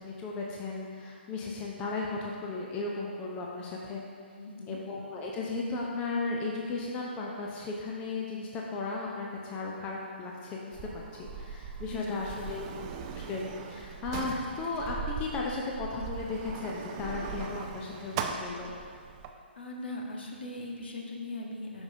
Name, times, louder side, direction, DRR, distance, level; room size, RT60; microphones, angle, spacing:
voice 1, 0.0-4.0 4.7-12.7 13.1-18.7, left 3 dB, 20° left, -2 dB, 0.7 m, -35 dB
voice 2, 4.4-4.8 11.9-12.5 19.6-21.8, left 2 dB, 60° left, 1 dB, 1.2 m, -39 dB
Sliding door, 10.7-19.3, right 6 dB, 25° right, 0.5 m, -39 dB
12.5 x 5.4 x 2.7 m, 2.2 s
figure-of-eight pair, 135°, 6 cm